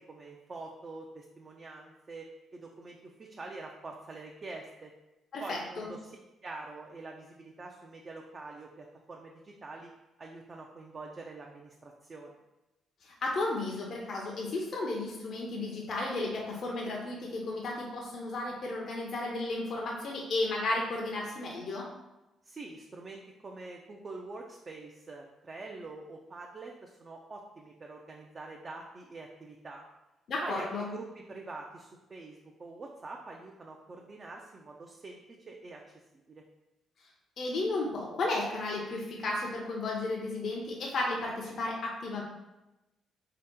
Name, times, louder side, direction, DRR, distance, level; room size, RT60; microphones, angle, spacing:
voice 1, 0.0-4.9 5.4-6.2 6.4-9.9 10.2-12.4 22.4-29.8 30.4-35.2 35.5-35.8 36.3-36.4, right 3 dB, 35° right, 0 dB, 0.4 m, -45 dB
voice 2, 5.3-5.9 13.0-21.9 30.3-30.9 37.4-42.2, left 2 dB, 60° left, -2 dB, 0.6 m, -33 dB
3.3 x 2.8 x 3.6 m, 0.99 s
cardioid pair, 90°, 0 cm